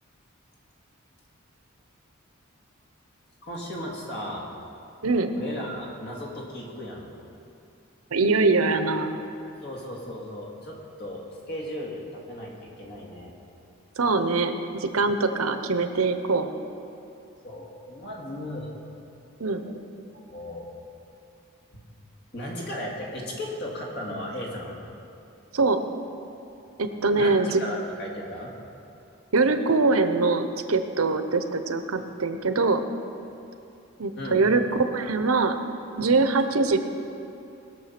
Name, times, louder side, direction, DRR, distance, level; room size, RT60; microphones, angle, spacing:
voice 1, 3.4-4.4 5.4-7.1 9.6-13.3 17.4-18.7 19.6-19.8 20.1-20.7 21.7-21.8 22.3-24.8 27.2-28.5 34.1-34.4, left 1 dB, 50° left, -2 dB, 2.3 m, -36 dB
voice 2, 8.1-9.2 14.0-16.5 19.4-19.6 25.5-25.8 26.8-27.6 29.3-32.8 34.0-35.6 36.0-36.8, right 3 dB, 85° right, 9 dB, 0.8 m, -23 dB
19.5 x 6.9 x 5.9 m, 2.7 s
head